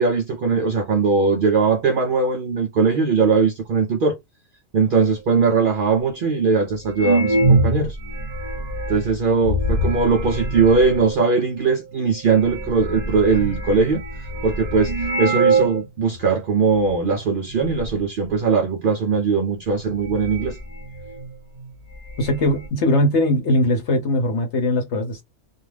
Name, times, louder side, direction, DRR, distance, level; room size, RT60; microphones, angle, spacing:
voice 1, 0.0-4.2 4.7-8.0 8.9-20.6, right 4 dB, 85° right, 0.4 m, -20 dB
sound 1, 6.9-11.2 11.9-12.0 12.3-15.8 16.1-16.2 16.9-17.2 17.5-18.0 19.2-19.3 19.7-21.3 21.6-21.7 21.9-22.7, right 2 dB, 40° right, 0.7 m, -24 dB
voice 2, 22.2-25.2, left 1 dB, 60° left, 0.9 m, -20 dB
2.4 x 2.3 x 3.2 m
omnidirectional pair, 1.5 m